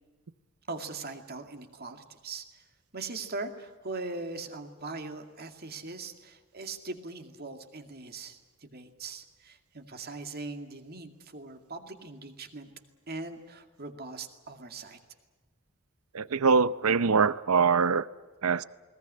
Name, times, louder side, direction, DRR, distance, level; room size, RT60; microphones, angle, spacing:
voice 1, 0.7-2.6 2.9-12.7 13.1-15.0, right 3 dB, 45° right, 6 dB, 2.3 m, -40 dB
voice 2, 16.1-18.1 18.4-18.6, right 5 dB, 90° right, 17 dB, 0.7 m, -23 dB
21.0 x 19.5 x 9.9 m, 1.3 s
head